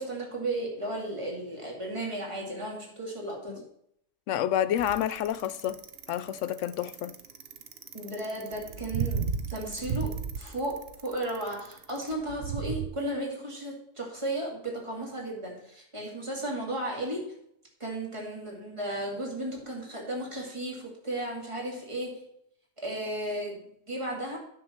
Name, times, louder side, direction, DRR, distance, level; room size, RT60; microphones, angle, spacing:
voice 1, 0.0-3.7 7.9-9.2 9.5-17.3 17.8-22.3 22.8-24.4, right 1 dB, 25° right, 2.5 m, -34 dB
voice 2, 4.3-5.8 6.1-7.2, left 11 dB, 80° left, 0.9 m, -29 dB
Bicycle, 4.8-12.9, right 6 dB, 55° right, 0.9 m, -34 dB
9.7 x 7.0 x 4.4 m
omnidirectional pair, 1.3 m